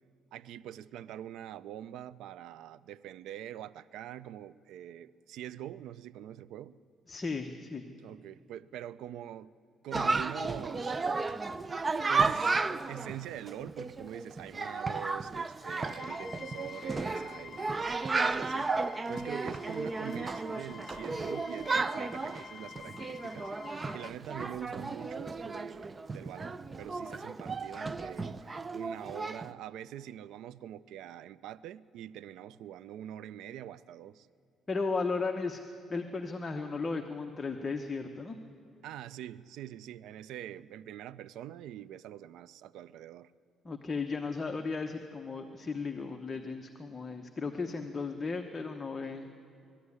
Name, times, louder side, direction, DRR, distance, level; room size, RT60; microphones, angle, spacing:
voice 1, 0.3-6.8 8.0-9.5 9.8-11.0 12.1-12.6 12.9-18.7 19.1-34.3 38.8-43.3, right 11 dB, 85° right, 17 dB, 0.4 m, -44 dB
voice 2, 7.1-7.8 34.7-35.6 35.9-38.4 43.6-49.3, left 4 dB, 25° left, 4 dB, 0.9 m, -35 dB
Chatter, 9.9-29.5, right 3 dB, 25° right, 0.5 m, -34 dB
sound 1, 15.8-24.1, left 6 dB, 40° left, 0.5 m, -49 dB
20.5 x 13.5 x 9.6 m, 2.6 s
cardioid pair, 125°, 0 cm